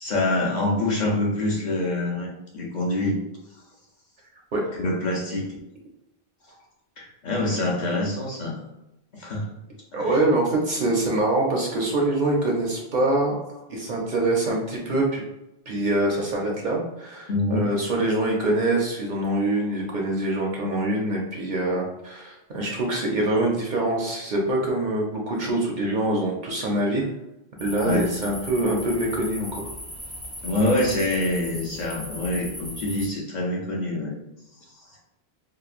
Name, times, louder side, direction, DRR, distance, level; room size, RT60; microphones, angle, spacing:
voice 1, 0.0-3.2 4.8-5.5 7.0-8.6 9.1-9.5 9.9-10.1 17.3-17.7 27.8-28.2 30.4-34.2 34.9-35.0, left 2 dB, 55° left, -4 dB, 0.6 m, -25 dB
voice 2, 9.9-13.4 13.7-15.2 15.7-27.1 27.6-29.7, right 2 dB, 55° right, -1 dB, 0.6 m, -24 dB
sound 1, 27.6-33.1, equal, 5° left, 0.3 m, -38 dB
2.9 x 2.1 x 2.4 m, 0.92 s
omnidirectional pair, 1.0 m